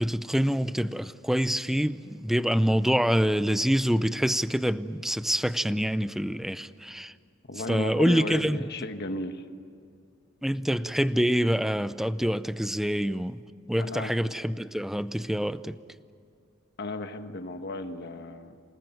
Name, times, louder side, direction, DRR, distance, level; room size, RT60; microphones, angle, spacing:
voice 1, 0.0-7.1 7.7-8.6 10.4-13.4 13.7-15.8, equal, ahead, 0.5 m, -26 dB
voice 2, 7.5-9.4 13.8-14.1 16.8-18.6, left 2 dB, 55° left, 1.5 m, -34 dB
27.5 x 18.5 x 9.3 m
head